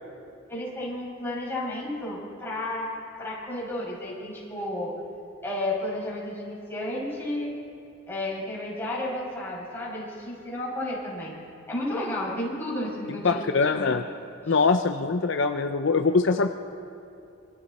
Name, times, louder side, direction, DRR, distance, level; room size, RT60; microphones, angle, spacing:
voice 1, 0.5-2.9 3.2-5.0 5.4-7.5 8.1-14.0 14.5-14.6, left 1 dB, 10° left, -6 dB, 5.9 m, -32 dB
voice 2, 13.2-14.0 14.5-16.5, left 4 dB, 60° left, 7 dB, 0.6 m, -23 dB
26.0 x 24.5 x 4.2 m, 2.7 s
head